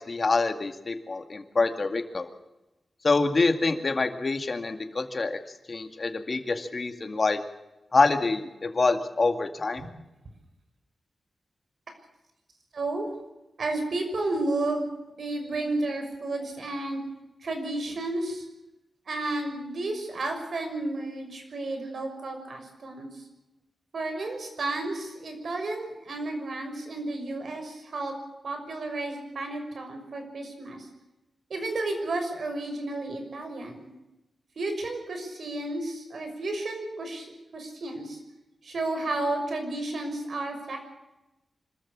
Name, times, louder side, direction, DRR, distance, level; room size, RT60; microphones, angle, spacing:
voice 1, 0.0-2.3 3.0-5.4 5.7-7.4 7.9-9.8, left 3 dB, 40° left, 7 dB, 2.1 m, -26 dB
voice 2, 12.7-13.1 13.6-14.9 15.2-17.0 17.4-18.5 19.1-23.1 23.9-28.2 28.4-30.9 31.5-33.9 34.6-38.2 38.6-40.8, right 2 dB, 60° right, 5 dB, 6.1 m, -32 dB
26.0 x 13.5 x 8.7 m, 1.0 s
wide cardioid pair, 130°, 0 cm